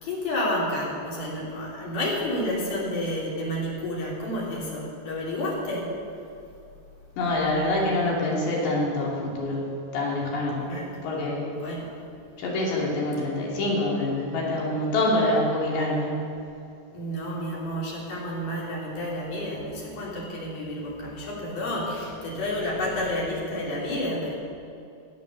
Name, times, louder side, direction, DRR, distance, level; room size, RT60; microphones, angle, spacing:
voice 1, 0.0-5.9 10.6-10.9 11.5-11.9 16.9-24.3, left 1 dB, 60° left, -5 dB, 4.7 m, -30 dB
voice 2, 7.2-10.6 11.0-11.5 12.4-16.2, left 1 dB, 75° left, -4 dB, 5.0 m, -26 dB
16.0 x 9.2 x 6.6 m, 2.6 s
omnidirectional pair, 5.1 m